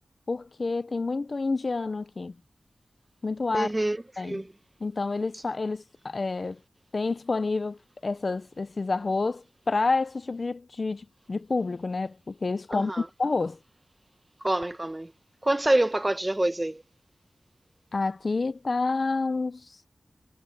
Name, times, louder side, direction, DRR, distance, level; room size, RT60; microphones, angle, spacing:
voice 1, 0.3-2.3 3.2-3.7 4.2-4.4 4.8-6.6 6.9-12.9 13.2-13.6 17.9-19.9, left 3 dB, 50° left, 0.6 m, -29 dB
voice 2, 3.5-4.5 5.3-5.4 12.7-13.1 14.4-15.1 15.4-16.8, right 1 dB, 20° right, 1.1 m, -26 dB
wide cardioid pair, 85°, 0 cm